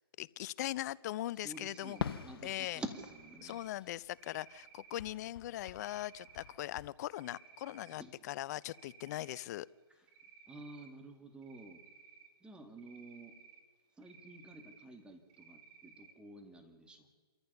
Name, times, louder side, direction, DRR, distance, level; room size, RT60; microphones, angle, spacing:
voice 1, 0.2-2.0 2.4-2.8 3.4-9.7, left 14 dB, 40° left, 22 dB, 0.5 m, -40 dB
voice 2, 1.4-3.6 7.9-8.2 10.5-11.8 12.4-13.3 14.0-17.1, right 2 dB, 5° right, 5 dB, 2.1 m, -49 dB
Cricket, 1.4-2.3 2.8-3.7 4.1-5.0 5.7-6.5 7.0-7.9 8.3-9.5 10.1-10.9 11.4-12.3 12.8-13.6 14.0-14.8 15.3-16.1, right 7 dB, 30° right, 2.2 m, -58 dB
Fireworks, 2.0-4.6 4.9-6.9, left 8 dB, 65° left, 0.8 m, -45 dB
27.0 x 14.0 x 6.9 m, 1.5 s
hypercardioid pair, 135°, 13 cm